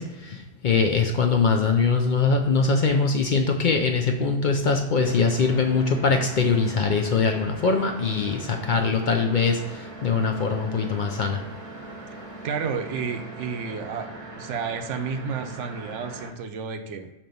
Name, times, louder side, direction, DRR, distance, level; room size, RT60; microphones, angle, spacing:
voice 1, 0.0-11.4, left 4 dB, 55° left, 3 dB, 0.5 m, -22 dB
sound 1, 5.0-16.3, right 2 dB, 35° right, 0.7 m, -40 dB
voice 2, 12.4-17.1, right 6 dB, 85° right, 7 dB, 0.9 m, -31 dB
6.2 x 2.9 x 5.1 m, 1.0 s
omnidirectional pair, 1.2 m